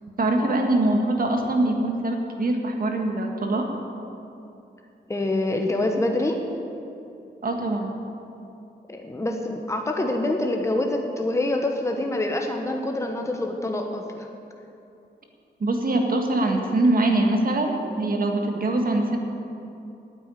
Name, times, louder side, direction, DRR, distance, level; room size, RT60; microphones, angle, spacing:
voice 1, 0.2-3.7 7.4-7.9 15.6-19.2, right 2 dB, 55° right, 3 dB, 1.7 m, -23 dB
voice 2, 5.1-6.4 8.9-14.3, left 1 dB, 15° left, 3 dB, 1.1 m, -26 dB
9.2 x 8.9 x 9.1 m, 2.8 s
cardioid pair, 85°, 18 cm